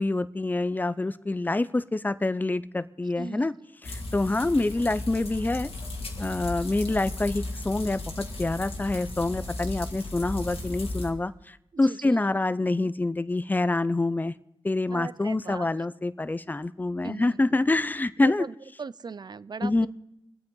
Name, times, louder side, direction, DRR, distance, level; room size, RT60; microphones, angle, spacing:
voice 1, 0.0-3.5 3.8-5.7 6.2-11.3 11.8-14.3 14.6-18.4 19.6-19.9, left 2 dB, 20° left, 15 dB, 0.5 m, -26 dB
voice 2, 3.2-3.5 11.7-12.3 12.8-12.9 14.9-15.7 17.0-17.4 18.2-19.9, right 5 dB, 45° right, 17 dB, 0.4 m, -39 dB
sound 1, 3.8-11.1, left 2 dB, 85° left, 1.7 m, -35 dB
25.0 x 8.7 x 3.8 m, 0.83 s
cardioid pair, 65°, 10 cm